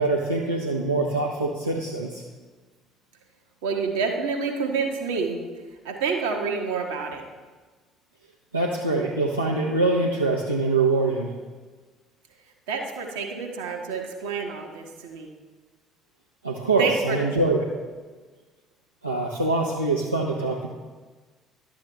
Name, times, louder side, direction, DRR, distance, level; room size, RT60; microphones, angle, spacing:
voice 1, 0.0-2.2 8.5-11.3 16.4-17.7 19.0-20.7, right 3 dB, 90° right, -1 dB, 0.6 m, -24 dB
voice 2, 3.6-5.4 5.8-7.2 12.7-15.3 16.8-17.2, right 5 dB, 70° right, 1 dB, 1.2 m, -28 dB
11.5 x 7.8 x 3.3 m, 1.4 s
figure-of-eight pair, 55°, 0 cm